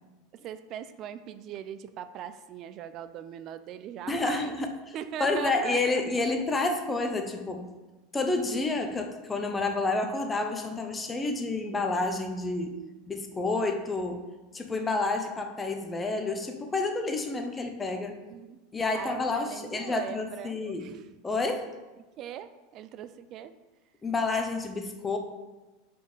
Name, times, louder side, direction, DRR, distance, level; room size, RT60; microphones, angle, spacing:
voice 1, 0.3-4.6 4.9-6.4 18.2-18.6 18.9-21.0 22.2-23.5, right 10 dB, 40° right, 12 dB, 0.3 m, -40 dB
voice 2, 4.1-4.7 5.2-7.6 8.1-12.7 13.1-14.2 14.5-18.2 18.7-20.9 21.2-21.7 24.0-25.2, left 3 dB, 15° left, 4 dB, 0.7 m, -29 dB
5.2 x 4.3 x 5.1 m, 1.1 s
supercardioid pair, 135°, 0 cm